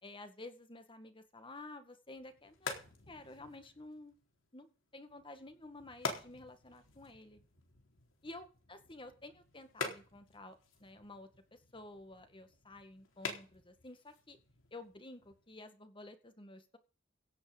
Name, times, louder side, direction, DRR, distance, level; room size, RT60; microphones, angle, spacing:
voice 1, 0.0-4.2 4.5-4.7 4.9-7.4 8.2-14.4 14.7-16.8, left 2 dB, 25° left, 9 dB, 1.9 m, -52 dB
sound 1, 2.1-15.6, left 4 dB, 85° left, 4.0 m, -47 dB
17.0 x 6.3 x 7.9 m, 0.37 s
head